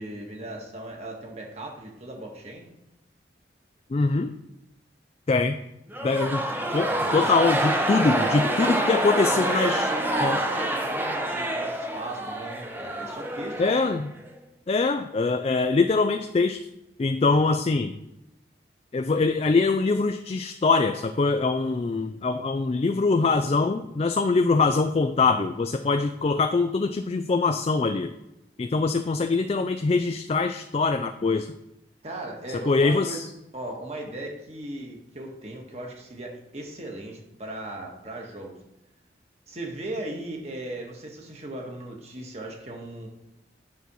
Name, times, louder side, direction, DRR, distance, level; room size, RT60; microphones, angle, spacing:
voice 1, 0.0-2.7 6.4-7.6 8.2-13.8 32.0-33.2 33.5-38.6 39.5-43.1, right 1 dB, 35° right, 0 dB, 1.5 m, -37 dB
voice 2, 3.9-4.3 5.3-5.6 6.0-6.4 6.7-9.9 10.2-10.4 13.6-14.1 14.7-16.6 17.0-18.0 18.9-28.1 28.6-31.5 32.7-33.3, left 3 dB, 35° left, 8 dB, 0.3 m, -23 dB
sound 1, 5.9-14.3, right 1 dB, 10° right, 0.8 m, -27 dB
9.3 x 4.2 x 6.2 m, 0.88 s
head